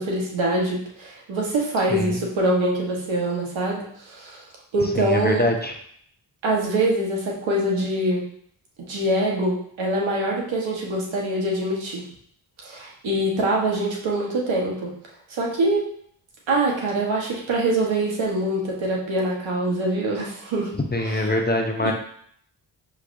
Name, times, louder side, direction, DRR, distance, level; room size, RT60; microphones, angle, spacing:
voice 1, 0.0-4.4 4.7-5.5 6.4-8.2 8.9-12.0 12.6-14.9 15.3-15.8 16.5-20.7 21.0-21.4 21.8-21.9, right 1 dB, 75° right, -2 dB, 1.3 m, -24 dB
voice 2, 5.0-5.7 20.9-21.9, left 1 dB, 20° left, 2 dB, 0.7 m, -23 dB
5.7 x 3.3 x 2.6 m, 0.64 s
cardioid pair, 50°, 46 cm